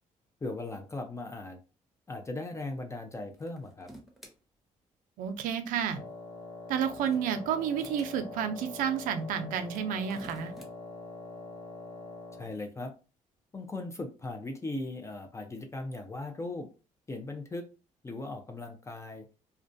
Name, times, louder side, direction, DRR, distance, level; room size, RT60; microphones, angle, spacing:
voice 1, 0.4-1.6 2.1-3.9 12.4-12.9 13.5-16.7 17.1-17.6 18.0-19.3, left 2 dB, 20° left, 4 dB, 0.5 m, -38 dB
sound 1, 3.3-4.3 6.6-8.1 9.6-10.7, right 1 dB, ahead, 0.8 m, -51 dB
voice 2, 5.2-6.0 6.7-10.5, right 8 dB, 90° right, 8 dB, 0.4 m, -31 dB
Wind instrument woodwind instrument, 5.9-12.6, left 3 dB, 65° left, 1.2 m, -44 dB
2.4 x 2.2 x 2.5 m, 0.32 s
cardioid pair, 85°, 13 cm